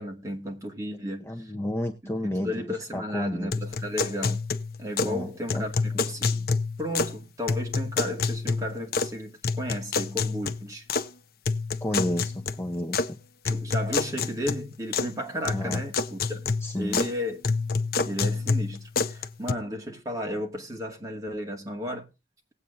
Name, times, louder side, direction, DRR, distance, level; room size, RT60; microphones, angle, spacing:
voice 1, 0.0-1.5 2.0-4.4 4.8-6.4 6.8-10.9 13.4-16.4 16.8-17.4 18.0-22.1, equal, 20° right, 2.1 m, -34 dB
voice 2, 1.2-3.5 5.0-5.6 5.9-6.0 11.8-13.2 15.5-15.8 16.6-17.0, left 1 dB, 15° left, 0.9 m, -31 dB
sound 1, 3.5-5.2 5.5-7.2 7.5-9.2 9.4-11.1 11.5-13.1 13.5-15.1 15.5-17.1 17.4-19.5, left 4 dB, 55° left, 0.6 m, -28 dB
19.0 x 8.3 x 2.7 m
head